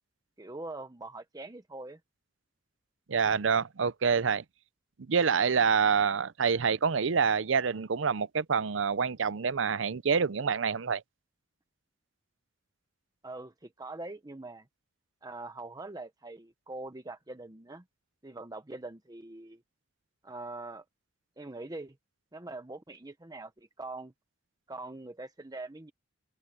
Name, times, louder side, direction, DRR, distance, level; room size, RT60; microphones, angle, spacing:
voice 1, 0.4-2.0 13.2-14.7 15.2-17.8 18.2-19.6 20.2-20.8 21.4-22.0 22.3-24.1 24.7-25.9, right 2 dB, 20° right, 0.9 m, -43 dB
voice 2, 3.1-4.4 5.1-11.0, right 6 dB, 75° right, 0.6 m, -27 dB
head